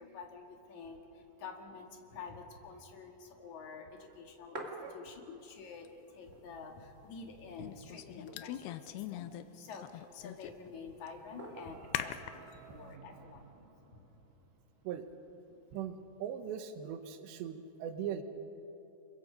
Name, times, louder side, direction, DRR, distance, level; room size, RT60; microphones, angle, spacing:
voice 1, 0.0-4.6 4.9-13.5 13.9-14.1, left 5 dB, 50° left, 2 dB, 2.9 m, -49 dB
sound 1, 4.2-5.5 5.9-6.0 6.2-7.0 7.4-7.5 8.0-8.8 9.5-10.2 11.4-12.0 13.1-13.6, right 1 dB, 30° right, 1.2 m, -48 dB
sound 2, 5.8-5.9 7.6-9.4 9.7-10.7 11.1-11.2 11.9-12.5, left 11 dB, 80° left, 2.7 m, -42 dB
sound 3, 10.7-14.8, right 4 dB, 65° right, 2.5 m, -57 dB
voice 2, 15.7-18.2, right 9 dB, 85° right, 8 dB, 3.3 m, -40 dB
29.0 x 22.5 x 5.2 m, 3.0 s
omnidirectional pair, 4.9 m